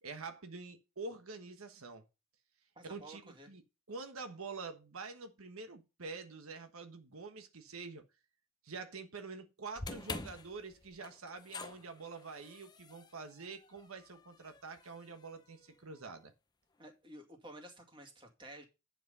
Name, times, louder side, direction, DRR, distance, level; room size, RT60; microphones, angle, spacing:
voice 1, 0.0-2.0 2.9-3.6 3.9-8.0 8.6-16.3, right 4 dB, 85° right, 1.2 m, -46 dB
voice 2, 2.8-3.5 16.8-18.7, right 1 dB, 20° right, 2.1 m, -52 dB
Door Shut Squeek, 9.8-16.0, left 3 dB, 20° left, 0.6 m, -48 dB
9.8 x 6.0 x 5.5 m
head